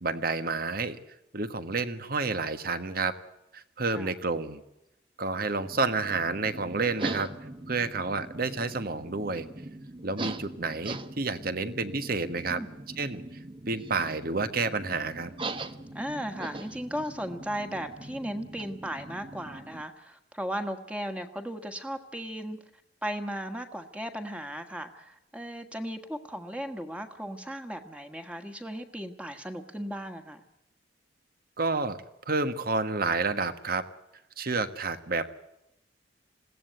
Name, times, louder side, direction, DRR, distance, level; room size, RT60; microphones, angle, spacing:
voice 1, 0.0-1.0 1.3-3.1 3.5-4.6 5.2-7.3 7.7-9.5 10.0-12.6 13.0-13.2 13.7-15.3 31.6-32.0 32.3-33.9 34.4-35.3, right 3 dB, 55° right, 11 dB, 1.5 m, -29 dB
sound 1, 5.6-19.8, right 2 dB, 30° right, 1.1 m, -41 dB
voice 2, 15.9-22.6 23.0-30.4, equal, 5° right, 6 dB, 1.6 m, -36 dB
21.0 x 16.5 x 9.3 m, 0.87 s
head